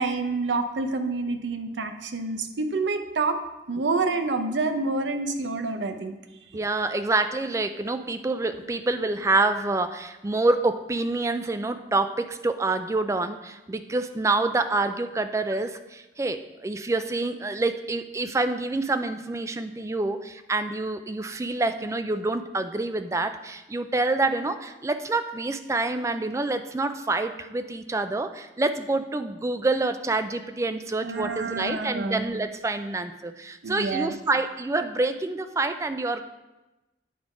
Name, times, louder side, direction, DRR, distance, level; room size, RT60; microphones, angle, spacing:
voice 1, 0.0-3.4 3.7-6.1 31.0-32.3 33.6-34.1, right 3 dB, 85° right, 7 dB, 0.7 m, -28 dB
voice 2, 6.5-36.2, right 2 dB, 15° right, 9 dB, 0.3 m, -27 dB
9.4 x 3.7 x 4.9 m, 1.0 s
head